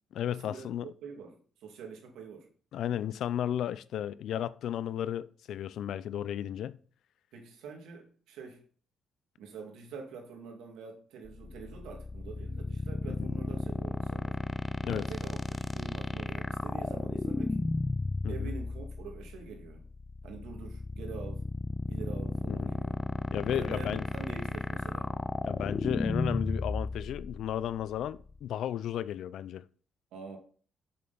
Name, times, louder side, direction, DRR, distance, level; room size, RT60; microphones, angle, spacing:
voice 1, 0.1-0.9 2.7-6.8 13.2-13.3 14.8-15.1 18.2-18.5 22.5-22.7 23.3-24.0 25.4-29.6, left 10 dB, 75° left, 0.4 m, -34 dB
voice 2, 1.0-2.5 7.3-8.6 9.4-14.4 14.9-17.6 18.3-19.9 20.2-21.5 21.9-23.0 23.5-25.1 30.1-30.4, right 5 dB, 85° right, 2.2 m, -45 dB
sound 1, 11.3-28.5, left 3 dB, 25° left, 0.5 m, -34 dB
7.6 x 6.8 x 4.1 m
cardioid pair, 90°, 0 cm